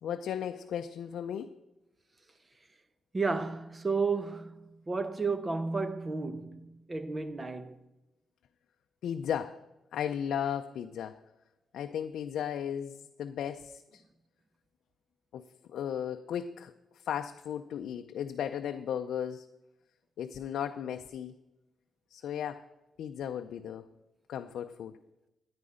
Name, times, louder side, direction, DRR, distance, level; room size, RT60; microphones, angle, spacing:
voice 1, 0.0-1.6 9.0-9.6 9.9-11.2 11.7-14.0 15.3-16.7 17.0-19.5 20.2-21.3 22.1-22.7 23.0-23.9 24.3-25.0, left 9 dB, 80° left, 0.5 m, -35 dB
voice 2, 3.1-7.8, right 4 dB, 20° right, 0.7 m, -32 dB
13.5 x 9.6 x 5.0 m
wide cardioid pair, 145°, 0 cm